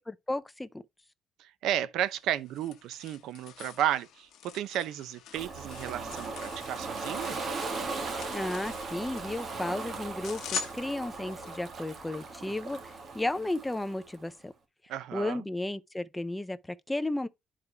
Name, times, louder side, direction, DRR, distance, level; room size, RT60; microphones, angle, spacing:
voice 1, 0.1-0.8 8.3-10.4 10.7-14.5 15.1-17.3, left 1 dB, 5° left, 0.4 m, -34 dB
voice 2, 1.4-7.4 14.9-15.4, right 11 dB, 75° right, 0.6 m, -33 dB
sound 1, 2.0-11.6, left 6 dB, 65° left, 1.3 m, -44 dB
Ocean, 5.3-14.2, right 3 dB, 35° right, 1.4 m, -38 dB
11.0 x 4.9 x 2.3 m
cardioid pair, 175°, 0 cm